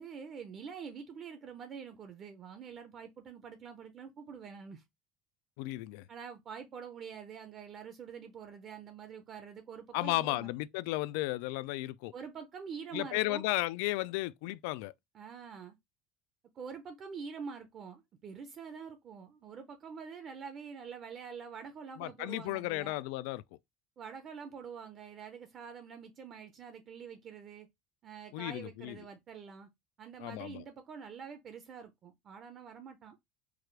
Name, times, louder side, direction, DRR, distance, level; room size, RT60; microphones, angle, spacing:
voice 1, 0.0-4.8 6.1-10.5 12.1-13.4 15.1-15.8 16.5-23.0 24.0-27.7 28.0-29.7 30.0-33.2, right 6 dB, 30° right, 0.6 m, -46 dB
voice 2, 5.6-6.1 9.9-12.1 12.9-14.9 22.0-23.4 28.3-29.0 30.2-30.6, left 19 dB, 75° left, 0.3 m, -34 dB
4.8 x 2.4 x 4.6 m
cardioid pair, 170°, 0 cm